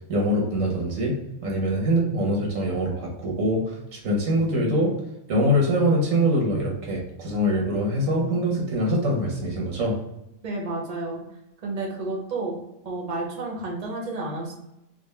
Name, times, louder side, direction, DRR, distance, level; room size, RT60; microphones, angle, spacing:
voice 1, 0.1-1.1 1.4-4.9 5.3-10.0, equal, 85° right, -1 dB, 1.3 m, -23 dB
voice 2, 10.4-11.2 11.6-12.6 12.8-14.5, right 2 dB, 35° right, -1 dB, 0.8 m, -31 dB
3.6 x 2.3 x 3.2 m, 0.86 s
omnidirectional pair, 1.3 m